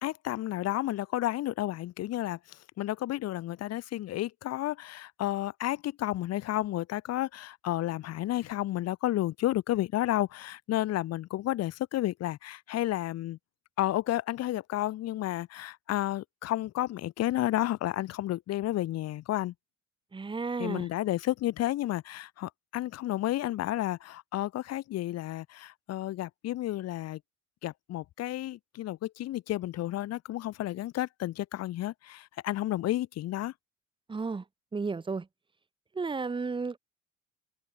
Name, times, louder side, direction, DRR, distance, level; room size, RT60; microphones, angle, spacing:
voice 1, 0.0-13.4 13.8-19.5 20.6-27.2 27.6-33.5, left 14 dB, 55° left, 1.3 m, -31 dB
voice 2, 20.1-20.9 34.1-34.4 34.7-35.3 36.0-36.8, right 4 dB, 15° right, 1.9 m, -33 dB
cardioid pair, 155°, 30 cm